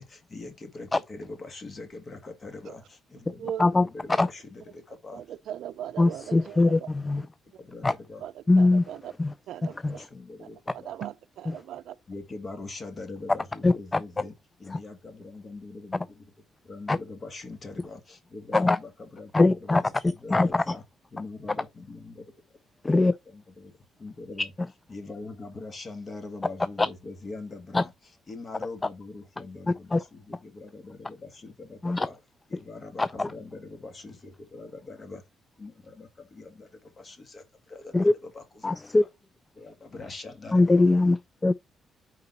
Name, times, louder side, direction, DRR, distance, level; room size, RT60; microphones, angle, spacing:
voice 1, 0.0-3.5 3.8-5.2 7.1-7.2 7.6-8.2 9.9-10.9 12.1-14.3 14.6-16.3 16.6-20.8 21.1-22.3 23.3-23.7 24.0-24.5 24.9-27.9 28.3-32.2 32.5-35.2 35.6-37.9 38.2-38.8 39.5-40.8, left 3 dB, 40° left, 1.8 m, -42 dB
voice 2, 3.3-3.6 5.1-6.9 8.2-9.1 9.5-10.0 10.4-12.0, right 11 dB, 75° right, 0.4 m, -39 dB
voice 3, 6.0-7.2 7.8-7.9 8.5-8.8 9.2-9.3 9.8-10.0 11.5-11.6 13.6-14.0 14.7-14.8 16.9-17.0 18.5-18.8 19.3-19.8 20.3-20.7 22.8-23.1 26.8-26.9 27.7-27.8 29.9-30.0 31.8-32.1 33.0-33.3 37.9-38.1 38.6-39.0 40.5-41.5, left 2 dB, 20° left, 0.3 m, -21 dB
4.8 x 3.9 x 5.4 m
cardioid pair, 90°, 0 cm